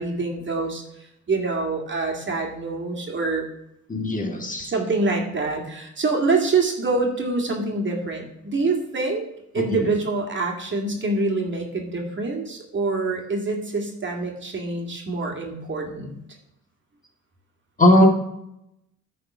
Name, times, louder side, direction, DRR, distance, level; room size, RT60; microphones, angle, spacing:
voice 1, 0.0-3.4 4.6-9.2 9.5-16.1, right 3 dB, 40° right, 1 dB, 2.2 m, -25 dB
voice 2, 3.9-4.7 9.6-9.9 17.8-18.1, left 1 dB, 25° left, 2 dB, 1.9 m, -19 dB
9.9 x 4.3 x 6.1 m, 0.81 s
cardioid pair, 90°, 30 cm